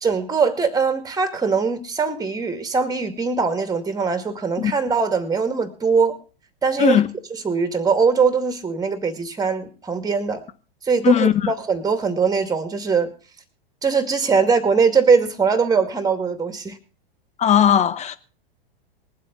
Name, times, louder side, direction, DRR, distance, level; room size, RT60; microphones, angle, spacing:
voice 1, 0.0-6.2 6.6-7.0 7.4-10.4 10.8-13.1 13.8-16.8, right 5 dB, 15° right, 2.3 m, -21 dB
voice 2, 11.0-11.5 17.4-18.2, left 9 dB, 25° left, 1.1 m, -17 dB
20.5 x 7.7 x 5.4 m
hypercardioid pair, 100°, 29 cm